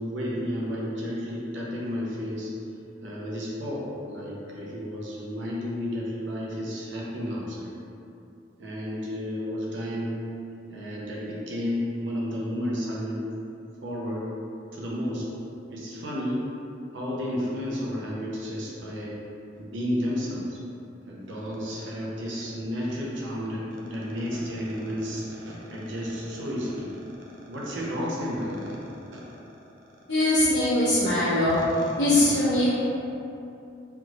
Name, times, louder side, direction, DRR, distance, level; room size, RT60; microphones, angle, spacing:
voice 1, 0.0-2.5 3.0-7.7 8.6-10.2 10.7-13.2 13.8-14.3 14.7-15.3 15.7-16.4 16.9-19.2 19.6-20.6 21.1-26.9 27.5-28.8 29.1-29.2, equal, 90° right, -5 dB, 0.7 m, -32 dB
voice 2, 30.1-31.6 32.0-32.7, left 1 dB, 65° left, -14 dB, 0.8 m, -21 dB
3.5 x 3.0 x 2.4 m, 2.7 s
head